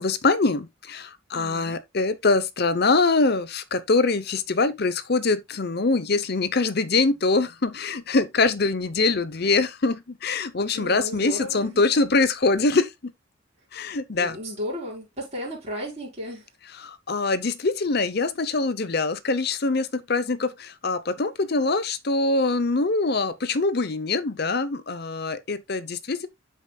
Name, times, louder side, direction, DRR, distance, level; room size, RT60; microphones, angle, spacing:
voice 1, 0.0-13.1 13.7-14.4 16.8-26.3, left 3 dB, 50° left, 0.7 m, -24 dB
voice 2, 1.3-1.8 10.7-11.8 14.2-16.5, left 1 dB, 30° right, 5.1 m, -34 dB
13.0 x 5.1 x 2.3 m
head